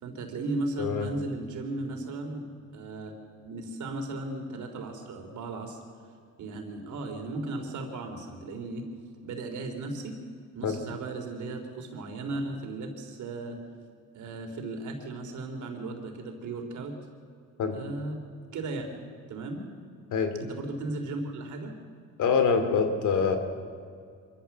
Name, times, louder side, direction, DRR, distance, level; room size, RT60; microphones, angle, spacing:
voice 1, 0.0-2.5 2.7-3.1 3.4-5.8 6.4-8.8 9.2-10.2 10.6-13.6 14.1-16.9 17.7-18.2 18.5-18.9 19.3-19.7 20.4-21.7, right 2 dB, 75° right, 4 dB, 3.7 m, -36 dB
voice 2, 22.2-23.4, left 5 dB, 75° left, 7 dB, 2.7 m, -25 dB
25.0 x 14.0 x 7.4 m, 2.2 s
cardioid pair, 90°, 30 cm